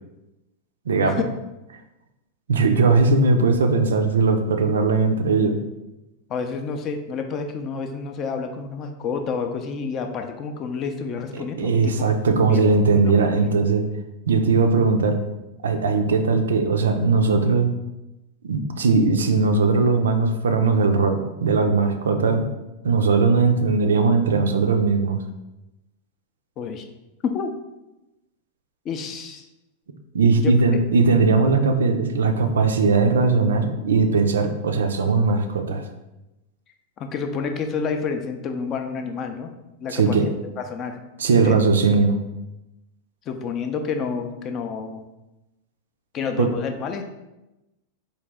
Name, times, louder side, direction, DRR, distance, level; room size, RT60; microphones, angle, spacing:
voice 1, 0.9-1.2 2.5-5.6 11.3-13.9 14.3-15.2 15.6-17.7 18.4-22.4 22.8-25.2 30.1-35.8 39.9-40.2 41.2-42.2 46.4-46.5, right 4 dB, 65° right, 6 dB, 0.4 m, -19 dB
voice 2, 6.3-11.9 12.5-12.8 13.4-13.5 26.6-26.9 27.2-27.5 28.8-29.5 30.4-30.5 37.0-39.5 39.8-41.0 41.4-41.5 43.3-45.0 46.1-47.0, left 5 dB, 30° left, 6 dB, 0.4 m, -29 dB
3.9 x 2.7 x 3.3 m, 0.98 s
figure-of-eight pair, 90°, 0 cm